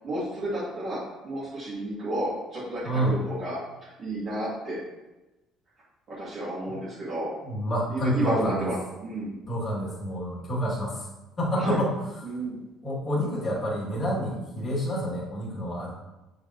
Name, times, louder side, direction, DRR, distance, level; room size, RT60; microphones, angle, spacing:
voice 1, 0.0-1.0 1.2-4.8 6.1-7.3 7.9-9.4 11.6-11.8 12.2-12.6, right 1 dB, 40° right, -11 dB, 2.3 m, -31 dB
voice 2, 2.8-3.2 6.7-6.8 7.4-8.7 9.5-11.1 11.4-12.2 12.8-15.9, equal, 20° left, -7 dB, 2.4 m, -28 dB
8.1 x 6.4 x 3.0 m, 1.1 s
cardioid pair, 180°, 0 cm